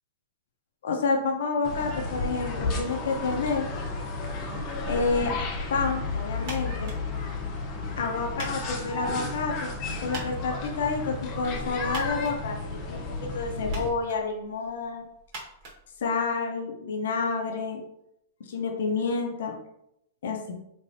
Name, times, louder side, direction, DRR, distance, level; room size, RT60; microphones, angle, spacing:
voice 1, 0.8-3.7 4.9-5.4 5.7-6.9 8.0-9.7 10.0-12.5 12.8-13.0 13.3-15.1 16.0-17.8 18.5-19.5 20.2-20.5, left 4 dB, 80° left, 2 dB, 0.6 m, -29 dB
sound 1, 1.6-13.9, left 3 dB, 40° left, 0.8 m, -32 dB
sound 2, 6.4-16.6, right 2 dB, 50° right, 1.4 m, -46 dB
3.2 x 3.0 x 2.6 m, 0.80 s
hypercardioid pair, 130°, 0 cm